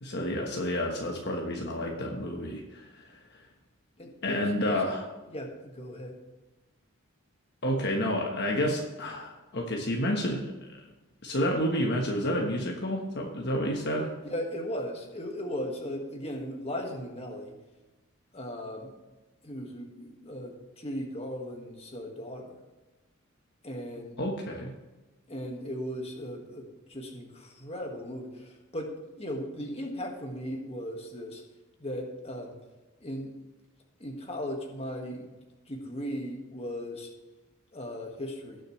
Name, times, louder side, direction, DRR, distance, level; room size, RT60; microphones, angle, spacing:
voice 1, 0.0-3.2 4.2-5.0 7.6-10.4 11.2-14.1 24.2-24.7, equal, 55° left, 0 dB, 1.2 m, -30 dB
voice 2, 4.0-4.8 5.3-6.2 14.2-17.5 18.3-18.9 19.4-22.6 23.6-24.2 25.3-31.4 31.8-32.6 33.0-33.3 34.0-35.3 35.7-37.1 37.7-38.6, equal, 30° left, 1 dB, 1.7 m, -37 dB
18.5 x 6.4 x 3.2 m, 1.1 s
head